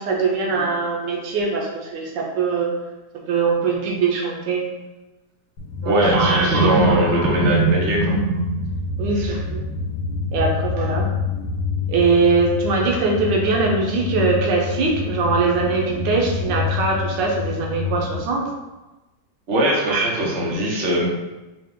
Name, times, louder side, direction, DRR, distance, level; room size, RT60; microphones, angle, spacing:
voice 1, 0.0-2.7 3.3-4.7 5.8-8.5 9.0-9.7 10.3-11.1 11.9-18.5 19.9-20.6, right 4 dB, 85° right, 0 dB, 1.4 m, -21 dB
sound 1, 5.6-18.2, left 5 dB, 65° left, 1.1 m, -27 dB
voice 2, 5.8-8.0 9.2-9.4 19.5-21.1, right 1 dB, 50° right, -2 dB, 1.0 m, -21 dB
4.7 x 2.2 x 3.6 m, 1.1 s
omnidirectional pair, 1.9 m